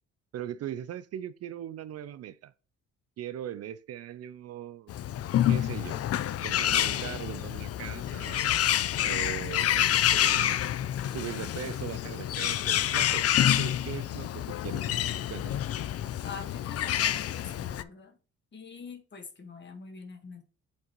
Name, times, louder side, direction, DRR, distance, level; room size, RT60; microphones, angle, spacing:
voice 1, 0.3-2.5 3.2-4.9 5.5-6.0 6.4-8.4 9.0-10.6 11.1-13.3 13.6-14.9 15.3-15.6, right 10 dB, 55° right, 0.4 m, -40 dB
Bird, 4.9-17.8, left 11 dB, 55° left, 0.5 m, -28 dB
voice 2, 16.2-18.2 18.5-20.4, left 5 dB, 35° left, 1.6 m, -44 dB
8.2 x 3.9 x 3.0 m
cardioid pair, 90°, 30 cm